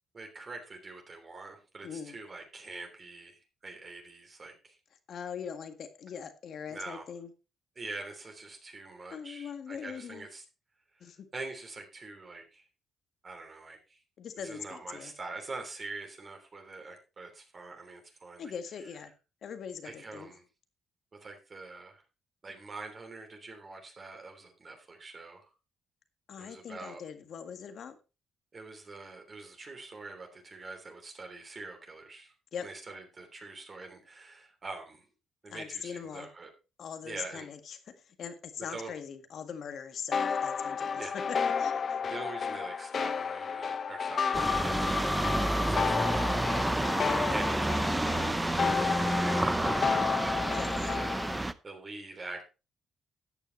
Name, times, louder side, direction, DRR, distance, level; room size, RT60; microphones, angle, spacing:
voice 1, 0.1-4.8 6.7-7.1 7.8-10.4 10.9-12.7 13.2-14.0 14.4-18.5 19.8-20.4 21.1-22.0 22.4-25.5 26.4-27.0 28.5-32.3 32.6-35.1 35.4-36.5 37.0-37.5 38.7-38.9 41.0-41.2 42.1-46.4 47.3-48.3 48.8-50.4 50.8-52.5, right 3 dB, 30° right, 3.2 m, -44 dB
voice 2, 1.8-2.2 5.1-7.3 9.1-10.3 11.0-11.3 14.2-15.1 18.4-19.1 19.4-20.3 26.3-28.0 32.5-32.7 35.5-36.3 36.8-42.0 50.5-50.7, left 7 dB, 60° left, 1.8 m, -41 dB
Back Ground Maj, 40.1-51.4, left 6 dB, 45° left, 0.7 m, -32 dB
sound 1, 44.3-51.5, right 1 dB, 10° right, 0.7 m, -29 dB
13.5 x 9.0 x 3.2 m
cardioid pair, 115°, 0 cm